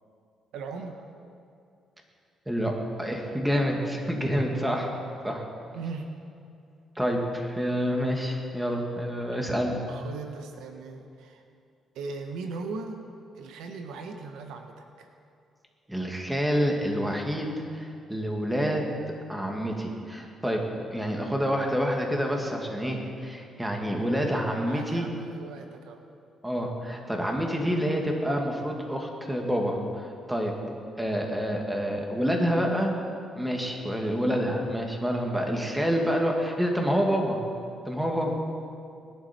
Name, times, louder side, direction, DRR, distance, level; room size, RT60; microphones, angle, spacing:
voice 1, 0.5-1.0 5.7-6.1 9.8-11.4 11.9-13.0 13.3-15.1 24.6-26.0, right 4 dB, 85° right, 5 dB, 1.3 m, -38 dB
voice 2, 2.5-4.9 5.2-5.4 7.0-9.8 15.9-18.9 19.3-20.6 20.9-25.1 26.4-30.5 31.0-32.9 33.4-37.4 37.9-38.3, equal, 10° right, 1 dB, 2.4 m, -28 dB
20.5 x 11.5 x 4.6 m, 2.4 s
cardioid pair, 90°, 0 cm